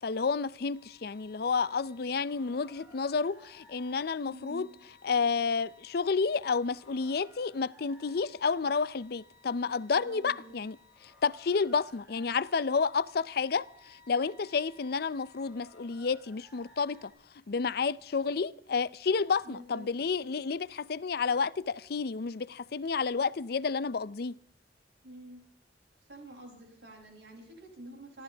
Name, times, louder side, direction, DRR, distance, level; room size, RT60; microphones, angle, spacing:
voice 1, 0.0-4.7 5.0-10.8 11.0-17.1 17.5-24.3, left 5 dB, 60° left, 0.5 m, -30 dB
sound 1, 0.7-17.1, left 3 dB, 5° right, 4.8 m, -59 dB
voice 2, 4.3-4.7 9.9-10.6 19.4-19.9 25.0-25.4 26.1-28.2, right 1 dB, 85° right, 7.4 m, -48 dB
29.0 x 12.5 x 3.4 m
head